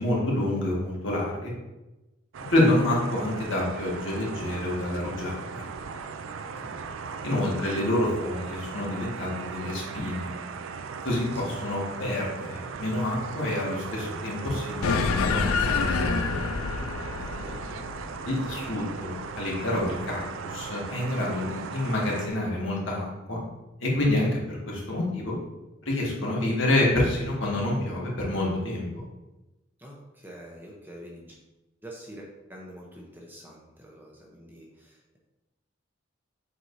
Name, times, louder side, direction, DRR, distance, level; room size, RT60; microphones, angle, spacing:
voice 1, 0.0-1.5 2.5-5.6 7.2-10.3 11.0-16.5 18.2-23.4 23.8-25.3 25.9-28.9, left 1 dB, 65° left, -4 dB, 1.9 m, -28 dB
sound 1, 2.3-22.3, right 5 dB, 70° right, 0.4 m, -38 dB
sound 2, 14.8-19.6, left 5 dB, 90° left, 0.5 m, -28 dB
voice 2, 17.2-17.7 18.4-18.5 29.8-31.4 31.8-35.2, equal, 10° right, -2 dB, 0.8 m, -46 dB
7.5 x 4.7 x 2.7 m, 1.0 s
head